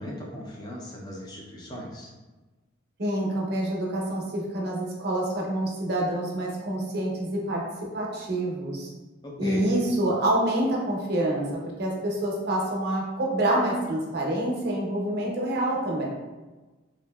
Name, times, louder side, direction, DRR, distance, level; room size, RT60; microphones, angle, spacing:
voice 1, 0.0-2.1 9.2-9.7, equal, 20° left, -2 dB, 0.4 m, -38 dB
voice 2, 3.0-7.6 7.9-8.9 9.4-11.5 11.8-16.0, right 1 dB, 50° right, -3 dB, 0.6 m, -27 dB
2.7 x 2.5 x 2.2 m, 1.2 s
head